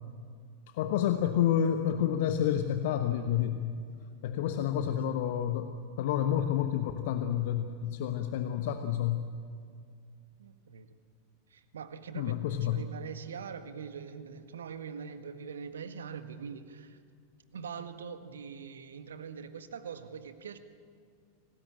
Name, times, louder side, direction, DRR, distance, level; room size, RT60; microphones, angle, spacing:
voice 1, 0.7-3.7 4.2-9.2 12.1-12.8, left 10 dB, 50° left, 8 dB, 1.1 m, -29 dB
voice 2, 4.4-4.8 10.4-11.0 11.5-17.0 17.5-20.6, right 6 dB, 65° right, 11 dB, 1.6 m, -43 dB
27.0 x 19.0 x 8.8 m, 2.2 s
figure-of-eight pair, 90°, 0 cm